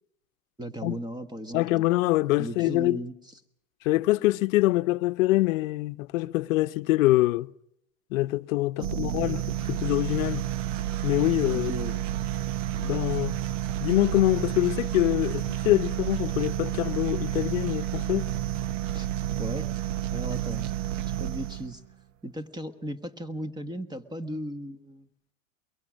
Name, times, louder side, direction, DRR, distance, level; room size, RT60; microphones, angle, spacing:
voice 1, 0.6-1.9 2.4-3.1 8.8-9.4 11.5-12.0 18.9-19.1 19.4-19.7 20.1-20.7 21.0-21.8 22.2-25.1, right 1 dB, 10° right, 1.5 m, -36 dB
voice 2, 1.5-3.0 3.8-7.5 8.1-10.5 11.0-11.7 12.8-13.4 13.8-18.3, left 18 dB, 70° left, 0.8 m, -25 dB
sound 1, 8.8-21.8, right 12 dB, 65° right, 1.1 m, -30 dB
23.0 x 22.5 x 6.3 m
hypercardioid pair, 110°, 41 cm